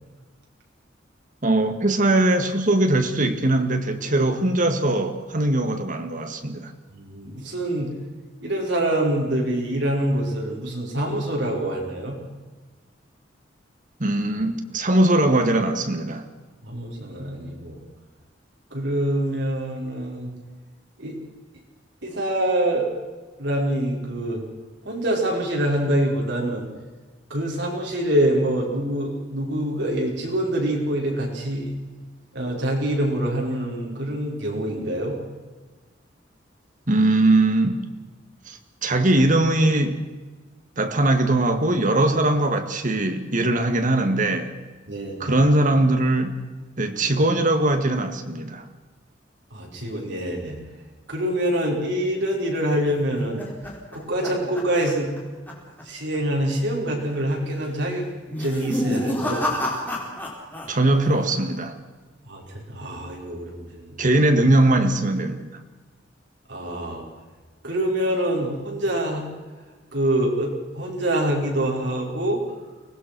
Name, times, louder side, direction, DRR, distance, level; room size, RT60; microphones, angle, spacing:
voice 1, 1.4-6.7 14.0-16.3 36.9-37.8 38.5-40.0 40.8-44.5 45.2-46.4 46.8-48.6 60.7-61.8 64.0-65.6, right 1 dB, 45° right, 2.0 m, -21 dB
voice 2, 6.9-7.9 8.4-12.2 16.6-17.8 18.7-20.3 21.0-21.1 22.0-22.9 23.4-24.4 24.9-26.7 27.3-31.7 32.3-35.2 44.9-45.4 49.5-50.6 51.1-53.4 53.9-55.1 55.9-58.1 58.4-59.6 62.3-62.4 62.7-64.1 66.5-67.0 67.6-69.2 69.9-72.4, right 1 dB, 65° right, 5.5 m, -25 dB
sound 1, 52.7-55.2 55.5-55.8 56.1-56.2 57.0-57.4 58.3-60.7 60.9-61.5, left 1 dB, 10° left, 4.4 m, -29 dB
24.0 x 19.0 x 6.2 m
head